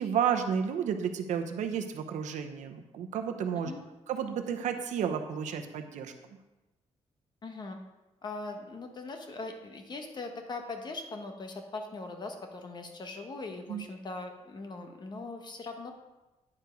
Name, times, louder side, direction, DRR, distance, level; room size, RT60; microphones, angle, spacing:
voice 1, 0.0-3.7 4.1-6.1 13.7-13.8, right 8 dB, 80° right, 6 dB, 0.8 m, -31 dB
voice 2, 7.4-7.8 8.2-15.9, left 3 dB, 35° left, 4 dB, 1.1 m, -40 dB
9.7 x 4.7 x 5.2 m, 1.1 s
cardioid pair, 120°, 12 cm